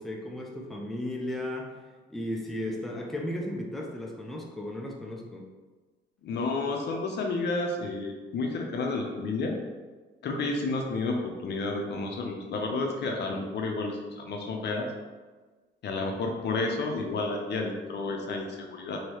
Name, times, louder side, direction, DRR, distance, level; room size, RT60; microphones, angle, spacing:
voice 1, 0.0-1.8 2.1-5.5, left 1 dB, ahead, 0 dB, 0.4 m, -35 dB
voice 2, 6.2-9.5 10.2-14.9 15.8-19.0, left 3 dB, 60° left, 2 dB, 0.6 m, -31 dB
3.0 x 2.7 x 2.9 m, 1.3 s
cardioid pair, 90°, 20 cm